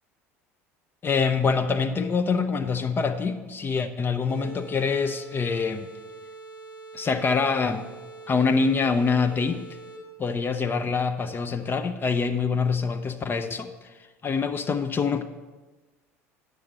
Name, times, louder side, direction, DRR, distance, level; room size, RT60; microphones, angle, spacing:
voice 1, 1.0-5.9 6.9-7.8 8.3-9.7 10.2-13.7 14.2-15.2, left 5 dB, 25° left, 9 dB, 0.6 m, -25 dB
sound 1, 4.3-10.2, right 3 dB, 50° left, 2.2 m, -44 dB
9.4 x 6.7 x 4.3 m, 1.3 s
figure-of-eight pair, 70°, 8 cm